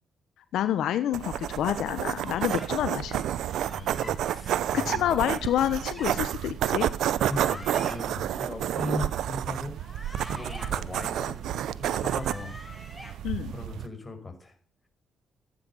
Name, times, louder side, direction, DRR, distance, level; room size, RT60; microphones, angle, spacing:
voice 1, 0.5-3.2 4.7-6.9 13.2-13.5, left 11 dB, 80° left, 12 dB, 1.0 m, -28 dB
sound 1, 1.1-13.9, right 11 dB, 80° right, 0.8 m, -30 dB
sound 2, 2.1-2.7 3.6-4.1 5.2-6.1 7.1-8.0 9.7-10.7 11.8-13.1, left 1 dB, 5° left, 6.3 m, -45 dB
voice 2, 3.6-5.1 7.3-9.8 10.1-13.0 13.5-14.5, left 2 dB, 20° left, 5 dB, 5.5 m, -38 dB
16.0 x 10.5 x 7.1 m, 0.40 s
cardioid pair, 70°, 0 cm